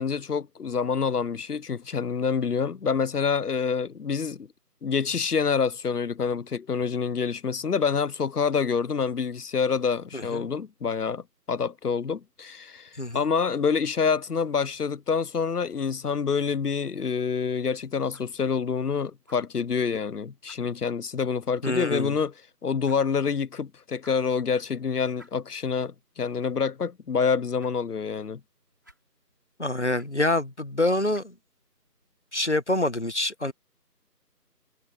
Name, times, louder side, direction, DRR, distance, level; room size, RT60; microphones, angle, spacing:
voice 1, 0.0-4.5 4.8-22.3 22.6-28.4, left 6 dB, 65° left, 0.6 m, -27 dB
voice 2, 10.1-10.5 13.0-13.3 21.6-22.2 29.6-31.3 32.3-33.5, left 2 dB, 45° left, 1.4 m, -26 dB
sound 1, 19.0-32.2, equal, 10° right, 3.2 m, -62 dB
figure-of-eight pair, 175°, 49 cm